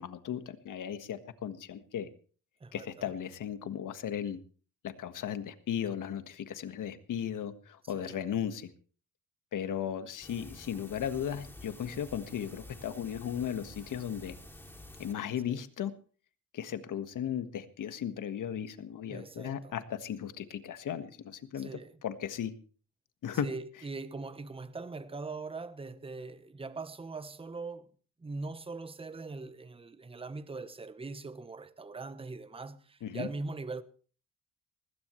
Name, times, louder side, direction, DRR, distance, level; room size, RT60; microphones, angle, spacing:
voice 1, 0.0-2.1 2.7-4.4 4.8-8.7 9.5-14.3 15.0-15.9 16.5-22.5 23.2-23.5 33.0-33.3, left 9 dB, 65° left, 1.6 m, -36 dB
voice 2, 2.6-3.1 7.8-8.2 15.5-15.6 19.1-19.8 21.5-22.0 23.4-27.9 28.2-33.8, right 3 dB, 15° right, 1.0 m, -41 dB
sound 1, 10.2-15.1, left 1 dB, 5° left, 2.6 m, -50 dB
19.5 x 16.0 x 3.2 m
cardioid pair, 105°, 33 cm